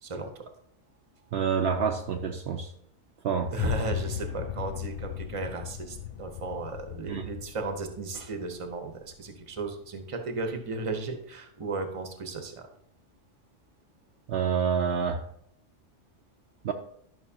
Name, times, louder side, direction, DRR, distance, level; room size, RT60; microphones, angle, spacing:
voice 1, 0.0-0.5 3.5-12.7, right 2 dB, 30° right, 5 dB, 0.9 m, -35 dB
voice 2, 1.3-2.7 3.2-3.5 7.1-7.3 14.3-15.2 16.6-16.7, right 6 dB, 65° right, 4 dB, 0.8 m, -27 dB
sound 1, 3.6-9.7, left 12 dB, 80° left, 0.9 m, -37 dB
11.5 x 6.0 x 2.8 m, 0.71 s
omnidirectional pair, 1.2 m